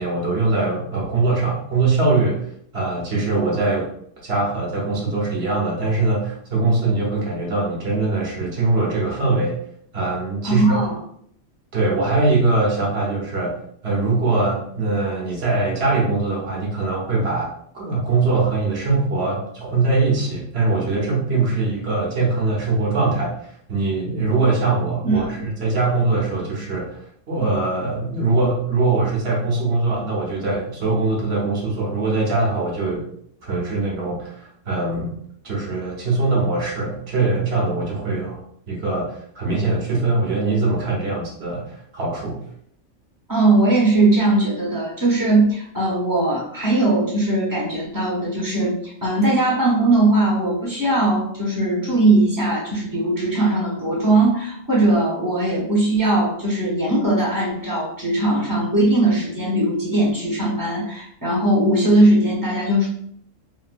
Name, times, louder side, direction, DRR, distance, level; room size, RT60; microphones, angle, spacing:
voice 1, 0.0-2.5 2.7-3.9 4.2-9.6 9.9-10.8 11.7-13.5 13.8-17.5 17.7-33.1 33.4-35.2 35.4-38.4 38.7-42.4, right 3 dB, 55° right, -3 dB, 1.1 m, -22 dB
voice 2, 10.4-11.0 25.0-25.4 43.3-62.9, right 2 dB, 15° right, -6 dB, 0.9 m, -19 dB
3.1 x 2.6 x 2.5 m, 0.66 s
omnidirectional pair, 1.4 m